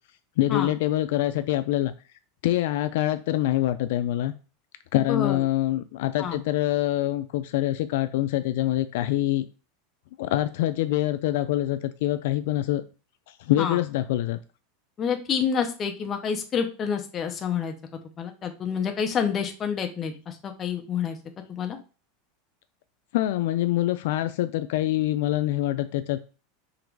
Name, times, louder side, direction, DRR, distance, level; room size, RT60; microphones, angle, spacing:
voice 1, 0.4-1.9 2.4-4.3 4.9-9.5 10.2-12.8 13.3-14.4 23.1-26.2, left 14 dB, 65° left, 11 dB, 0.3 m, -25 dB
voice 2, 4.9-5.4 6.2-6.4 13.6-13.8 15.0-17.7 18.2-21.2 21.5-21.8, left 7 dB, 20° left, 4 dB, 0.7 m, -28 dB
3.8 x 3.0 x 4.5 m, 0.34 s
supercardioid pair, 165°, 0 cm